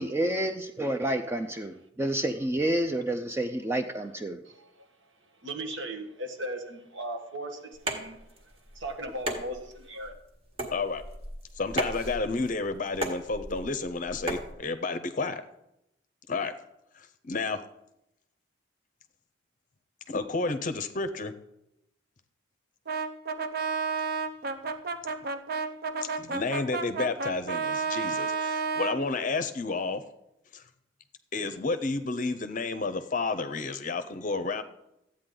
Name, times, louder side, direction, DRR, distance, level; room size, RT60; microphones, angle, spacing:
voice 1, 0.0-4.4, right 1 dB, 15° right, 0.4 m, -29 dB
voice 2, 4.4-5.1 5.4-10.2, right 1 dB, 70° right, 1.4 m, -38 dB
sound 1, 7.7-14.5, right 1 dB, 30° right, 1.5 m, -37 dB
voice 3, 10.7-11.0 11.6-15.4 16.3-16.5 16.9-17.6 20.1-21.3 26.0-30.0 30.5-30.6 31.3-34.6, left 3 dB, 40° left, 0.6 m, -31 dB
Brass instrument, 22.9-29.0, right 4 dB, 50° right, 0.7 m, -31 dB
13.5 x 8.6 x 3.8 m
head